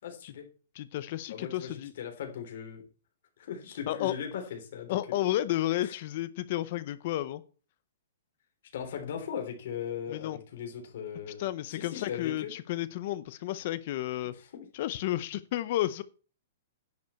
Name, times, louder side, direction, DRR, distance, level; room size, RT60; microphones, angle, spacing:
voice 1, 0.0-0.4 1.3-2.8 3.4-5.0 5.8-5.9 8.7-12.5 14.2-14.7, left 8 dB, 50° left, 3.4 m, -39 dB
voice 2, 0.8-1.9 3.9-4.1 4.9-7.4 10.1-10.4 11.4-14.3 14.7-16.0, left 14 dB, 35° left, 0.6 m, -32 dB
10.5 x 5.3 x 8.3 m
hypercardioid pair, 175°, 0 cm